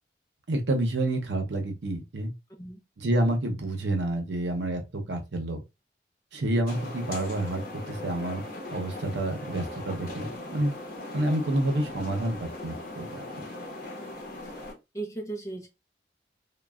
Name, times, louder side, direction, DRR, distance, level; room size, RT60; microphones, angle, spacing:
voice 1, 0.5-2.3 3.0-5.6 6.3-8.4 8.7-10.7 11.1-12.4 12.6-13.2, right 1 dB, 90° right, 0.7 m, -28 dB
sound 1, 6.7-14.7, left 1 dB, 50° left, 0.8 m, -39 dB
voice 2, 14.9-15.7, right 2 dB, 15° left, 0.5 m, -37 dB
3.1 x 2.2 x 2.3 m
head